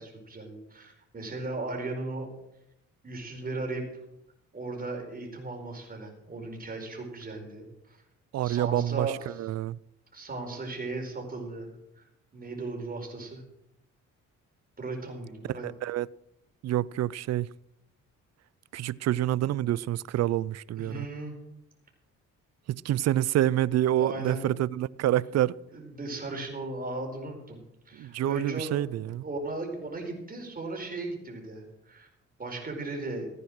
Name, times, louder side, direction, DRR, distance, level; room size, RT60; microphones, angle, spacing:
voice 1, 0.0-2.3 3.0-3.8 4.5-8.0 8.4-9.4 10.1-11.7 12.0-12.1 12.3-13.4 14.8-15.7 20.8-21.4 23.9-24.5 25.7-32.1 32.4-33.3, right 2 dB, 30° right, 4.6 m, -37 dB
voice 2, 8.3-9.8 15.6-16.1 16.6-17.5 18.7-21.1 22.7-25.6 27.9-29.2, right 13 dB, 60° right, 0.5 m, -27 dB
15.0 x 9.8 x 6.2 m
cardioid pair, 90°, 30 cm